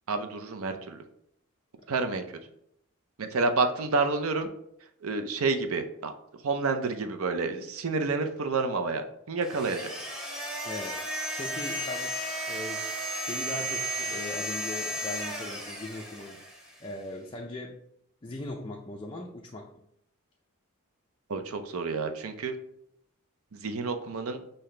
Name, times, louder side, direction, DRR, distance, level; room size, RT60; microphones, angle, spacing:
voice 1, 0.1-1.0 1.9-2.4 3.2-4.5 5.0-6.1 6.4-9.9 21.3-22.5 23.5-24.4, right 4 dB, 75° right, 7 dB, 0.5 m, -29 dB
sound 1, 9.4-16.8, right 1 dB, 5° right, 0.9 m, -34 dB
voice 2, 10.6-11.1 11.4-12.2 12.5-16.4 16.8-17.8 18.2-19.7, left 2 dB, 20° left, 0 dB, 0.4 m, -39 dB
5.7 x 2.7 x 3.2 m, 0.74 s
head